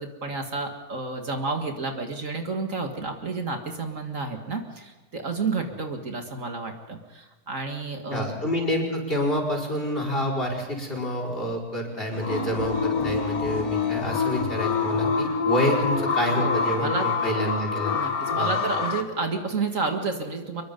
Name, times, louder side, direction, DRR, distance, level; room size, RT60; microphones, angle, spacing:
voice 1, 0.0-8.3 16.4-17.1 17.9-20.6, right 4 dB, 55° right, 4 dB, 2.2 m, -30 dB
voice 2, 8.1-17.9 18.3-18.5, equal, 35° left, 0 dB, 5.2 m, -28 dB
sound 1, 12.1-19.0, left 5 dB, 70° left, 1.9 m, -26 dB
25.0 x 22.5 x 5.3 m, 1.2 s
omnidirectional pair, 1.6 m